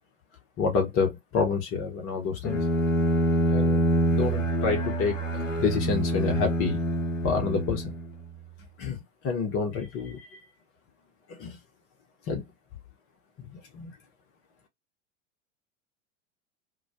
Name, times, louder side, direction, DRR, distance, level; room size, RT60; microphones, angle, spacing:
voice 1, 0.6-2.6 3.5-3.8 4.1-5.2 5.6-6.8 7.2-7.9 8.8-9.0 9.2-10.4 11.3-11.6 12.3-12.4 13.5-13.9, left 5 dB, 35° left, 0.8 m, -28 dB
Bowed string instrument, 2.4-8.3, right 1 dB, 90° left, 0.6 m, -26 dB
2.2 x 2.1 x 2.6 m
figure-of-eight pair, 85°, 37 cm